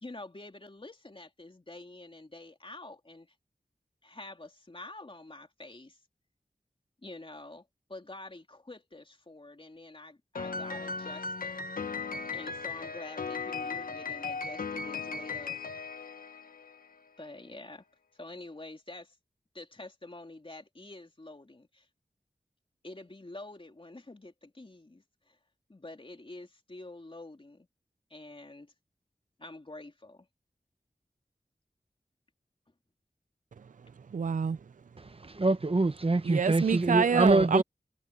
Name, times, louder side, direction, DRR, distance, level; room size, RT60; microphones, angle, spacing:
voice 1, 0.0-3.3 4.0-6.0 7.0-11.6 12.3-15.6 17.2-17.8 18.1-19.2 19.5-21.9 22.8-25.4 25.7-27.7 28.1-28.7 29.4-30.3, left 2 dB, 40° left, 3.0 m, -47 dB
Piano, 10.3-16.9, left 4 dB, 85° left, 1.3 m, -37 dB
voice 2, 33.6-34.6 36.3-37.6, right 6 dB, 65° right, 0.5 m, -28 dB
voice 3, 35.0-37.6, right 2 dB, 40° right, 1.1 m, -25 dB
cardioid pair, 45°, 14 cm